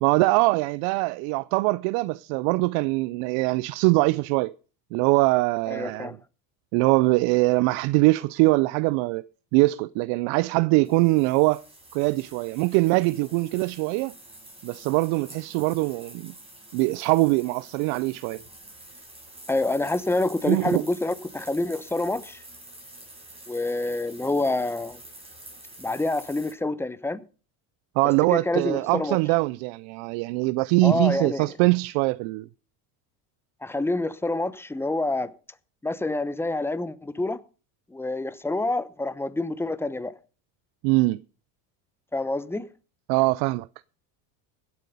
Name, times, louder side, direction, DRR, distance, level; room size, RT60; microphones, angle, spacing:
voice 1, 0.0-4.5 4.9-6.2 6.7-11.6 11.9-14.1 14.6-16.3 16.7-18.4 20.4-20.8 28.0-32.5 40.8-41.2 43.1-43.7, right 23 dB, 75° right, 0.6 m, -22 dB
voice 2, 5.7-6.2 19.5-22.4 23.5-25.0 25.8-27.2 28.3-29.2 30.8-31.5 33.6-35.3 35.8-37.4 37.9-40.1 42.1-42.7, left 2 dB, 5° left, 0.9 m, -27 dB
sound 1, 10.8-26.5, right 1 dB, 10° right, 5.6 m, -47 dB
17.0 x 8.2 x 5.4 m
supercardioid pair, 100°, 49 cm